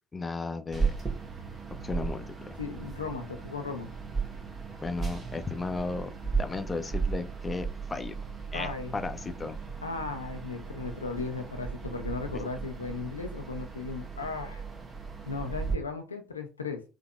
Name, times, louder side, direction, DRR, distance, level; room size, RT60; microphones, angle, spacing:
voice 1, 0.1-1.0 1.8-2.6 4.8-8.2 8.5-9.6, left 3 dB, 25° left, 8 dB, 0.5 m, -35 dB
sound 1, 0.7-15.7, right 5 dB, 30° right, 1.0 m, -36 dB
voice 2, 2.6-3.9 8.5-9.0 9.8-14.6 15.3-16.8, left 4 dB, 85° left, 6 dB, 0.4 m, -36 dB
3.7 x 2.8 x 2.2 m, 0.32 s
figure-of-eight pair, 55°, 0 cm